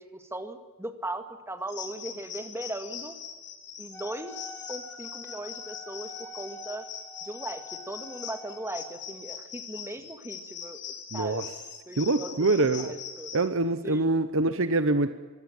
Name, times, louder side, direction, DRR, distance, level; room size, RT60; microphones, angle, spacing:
voice 1, 0.0-3.2 3.8-4.4 4.7-6.9 7.2-11.5 11.9-13.3 13.8-14.2, right 1 dB, 10° right, 8 dB, 2.0 m, -38 dB
sound 1, 1.7-13.4, left 8 dB, 50° left, 4.1 m, -41 dB
Wind instrument woodwind instrument, 3.9-9.0, left 1 dB, 10° left, 5.4 m, -47 dB
voice 2, 11.1-11.4 12.0-12.9 13.3-15.1, right 2 dB, 60° right, 11 dB, 1.0 m, -25 dB
24.0 x 17.0 x 9.0 m, 1.4 s
head